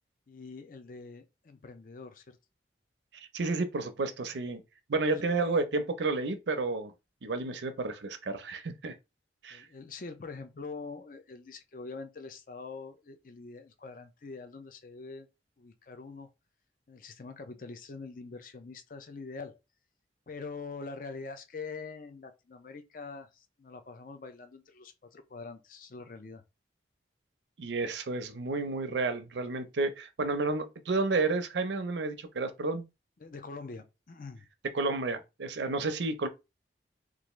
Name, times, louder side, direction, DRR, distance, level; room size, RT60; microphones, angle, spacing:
voice 1, 0.3-2.4 5.0-5.5 9.5-15.3 15.6-16.3 16.9-19.6 20.3-26.4 33.2-34.5, left 4 dB, 45° left, 0.5 m, -44 dB
voice 2, 3.1-4.6 4.9-6.9 7.2-8.9 9.4-9.6 27.6-32.9 34.7-36.3, right 3 dB, 80° right, 0.6 m, -31 dB
3.3 x 2.5 x 3.0 m
head